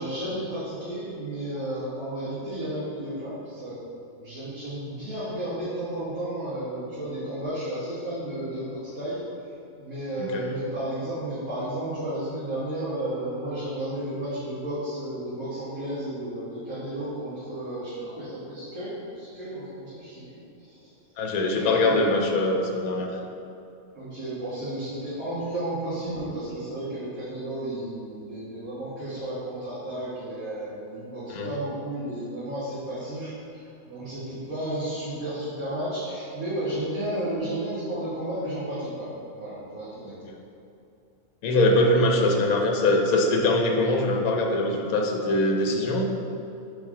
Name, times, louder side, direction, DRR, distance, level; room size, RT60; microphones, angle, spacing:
voice 1, 0.0-3.8 4.2-9.3 9.8-20.8 21.5-22.1 23.9-40.2 42.0-42.2, right 1 dB, 70° right, -12 dB, 2.1 m, -33 dB
voice 2, 21.2-23.1 31.3-31.5 40.3-40.4 41.4-46.0, left 2 dB, 75° left, 2 dB, 1.2 m, -22 dB
5.6 x 4.5 x 4.9 m, 2.7 s
omnidirectional pair, 1.5 m